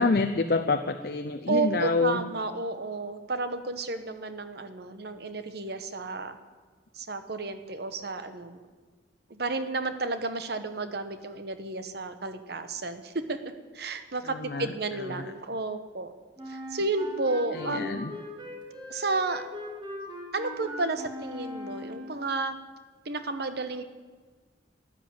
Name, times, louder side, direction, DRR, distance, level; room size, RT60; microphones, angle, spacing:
voice 1, 0.0-2.2 14.2-14.7 15.1-15.3 17.5-18.1, left 3 dB, 55° left, 7 dB, 0.6 m, -27 dB
voice 2, 1.5-6.4 6.9-8.7 9.3-13.4 13.7-16.1 16.5-17.9 18.9-19.4 20.3-22.6 23.0-23.8, right 3 dB, 55° right, 10 dB, 1.1 m, -32 dB
Wind instrument woodwind instrument, 16.4-22.3, left 1 dB, 25° right, 2.6 m, -40 dB
12.5 x 11.0 x 8.9 m, 1.4 s
head